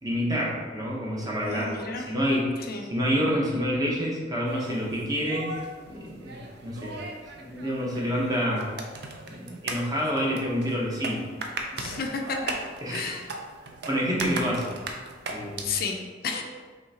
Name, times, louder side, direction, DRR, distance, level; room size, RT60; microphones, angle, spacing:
voice 1, 0.0-1.7 2.0-2.5 2.9-5.5 5.9-7.0 7.3-8.7 9.3-11.2 11.7-11.8 12.8-13.2 13.9-14.7 15.3-15.7, equal, 20° right, -4 dB, 0.9 m, -28 dB
voice 2, 1.4-2.1 2.7-2.8 11.8-13.3 15.6-16.4, left 4 dB, 55° left, 3 dB, 0.4 m, -32 dB
sound 1, 4.5-15.9, right 3 dB, 60° right, 0.5 m, -38 dB
5.4 x 3.2 x 2.8 m, 1.4 s
head